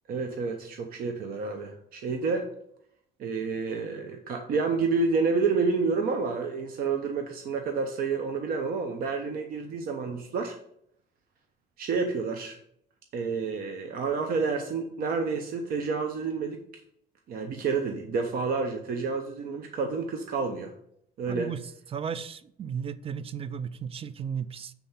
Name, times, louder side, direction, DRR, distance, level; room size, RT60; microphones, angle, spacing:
voice 1, 0.1-2.5 3.2-10.6 11.8-12.6 13.1-16.6 17.3-20.7 21.2-21.5, right 4 dB, 60° right, 0.8 m, -29 dB
voice 2, 21.3-21.6 21.9-24.7, right 7 dB, 35° right, 0.4 m, -35 dB
7.1 x 3.5 x 5.5 m
cardioid pair, 110°, 17 cm